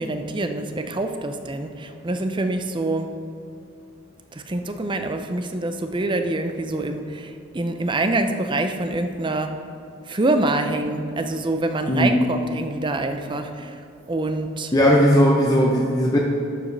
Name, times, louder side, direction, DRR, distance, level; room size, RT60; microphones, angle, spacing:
voice 1, 0.0-3.1 4.3-9.6 10.1-13.8 14.1-14.7, right 2 dB, 25° right, 7 dB, 0.5 m, -25 dB
voice 2, 11.9-12.2 14.7-16.2, equal, 20° left, -2 dB, 0.6 m, -17 dB
11.0 x 7.2 x 3.3 m, 2.7 s
head